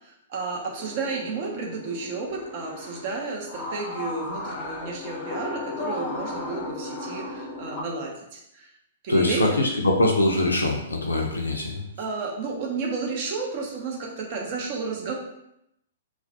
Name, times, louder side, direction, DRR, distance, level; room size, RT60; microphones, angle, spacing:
voice 1, 0.0-8.7 9.0-9.6 12.0-15.1, right 4 dB, 45° right, -1 dB, 0.6 m, -32 dB
sound 1, 0.8-7.8, left 2 dB, 25° left, 0.5 m, -35 dB
voice 2, 9.1-11.8, left 2 dB, 80° left, 0 dB, 0.4 m, -23 dB
2.3 x 2.1 x 2.7 m, 0.80 s
figure-of-eight pair, 110°, 0 cm